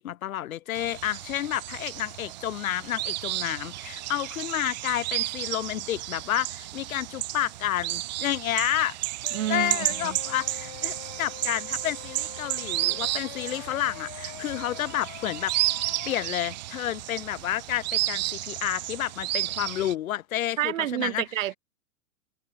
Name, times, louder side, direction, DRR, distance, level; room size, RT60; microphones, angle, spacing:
voice 1, 0.0-9.0 9.5-15.5 16.0-21.2, left 12 dB, 85° left, 0.9 m, -30 dB
sound 1, 0.7-19.9, right 17 dB, 35° right, 0.7 m, -32 dB
sound 2, 9.2-16.2, left 40 dB or more, 25° left, 1.0 m, -44 dB
voice 2, 9.3-10.2 20.6-21.6, right 13 dB, 70° right, 0.8 m, -29 dB
hypercardioid pair, 160°, 41 cm